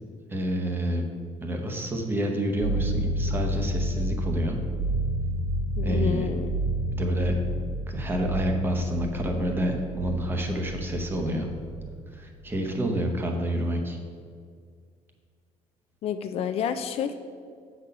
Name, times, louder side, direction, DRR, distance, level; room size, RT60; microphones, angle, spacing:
voice 1, 0.3-1.1 1.4-4.6 5.8-6.3 6.9-7.3 7.9-11.5 12.1-14.0, right 1 dB, 15° right, 3 dB, 0.8 m, -28 dB
sound 1, 2.6-12.4, right 1 dB, 60° right, 1.8 m, -30 dB
voice 2, 5.8-6.5 16.0-17.2, left 8 dB, 55° left, 9 dB, 0.4 m, -29 dB
7.6 x 4.1 x 6.6 m, 2.1 s
cardioid pair, 170°, 13 cm